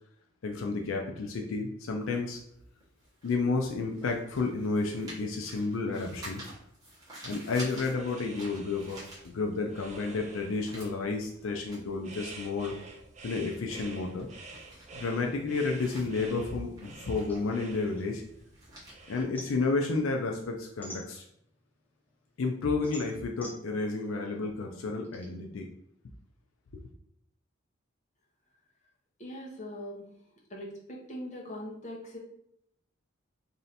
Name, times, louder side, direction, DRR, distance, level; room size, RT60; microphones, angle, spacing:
voice 1, 0.4-2.4 3.2-6.4 7.2-9.0 9.2-12.7 13.2-14.3 14.9-18.2 19.1-21.2 22.4-25.7, left 3 dB, 80° left, 2 dB, 0.4 m, -31 dB
sound 1, 2.0-9.8 10.1-20.2, right 1 dB, 20° right, 1.2 m, -50 dB
sound 2, 7.7-19.2, right 3 dB, 35° right, 0.4 m, -49 dB
sound 3, 17.3-18.8 19.1-21.6 22.1-25.2, left 1 dB, 10° left, 0.7 m, -48 dB
voice 2, 29.2-30.1 30.5-32.2, left 1 dB, 35° left, -3 dB, 0.9 m, -41 dB
3.2 x 2.7 x 4.0 m, 0.73 s
head